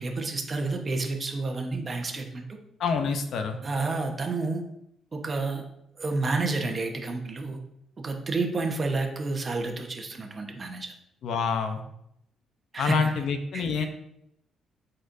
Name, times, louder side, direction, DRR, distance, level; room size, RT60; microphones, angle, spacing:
voice 1, 0.0-2.5 3.6-4.6 5.1-5.6 6.0-7.6 8.0-10.9 12.7-13.1 13.5-13.9, right 3 dB, 35° right, 3 dB, 1.1 m, -30 dB
voice 2, 2.8-3.6 11.2-11.8 12.8-13.9, left 5 dB, 70° left, 7 dB, 0.7 m, -27 dB
8.3 x 4.4 x 2.7 m, 0.78 s
cardioid pair, 90°, 0 cm